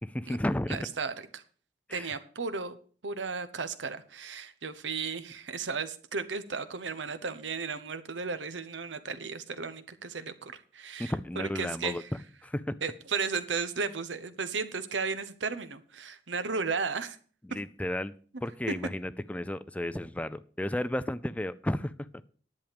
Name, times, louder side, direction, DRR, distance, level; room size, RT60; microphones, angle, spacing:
voice 1, 0.0-0.9 1.9-2.1 11.0-12.0 12.4-12.8 17.4-18.1 18.4-21.9, left 1 dB, 10° left, 0.4 m, -33 dB
voice 2, 0.7-1.4 1.9-2.8 3.0-12.1 12.8-17.2 18.7-18.8, right 5 dB, 90° right, 1.0 m, -34 dB
10.5 x 8.5 x 5.2 m
head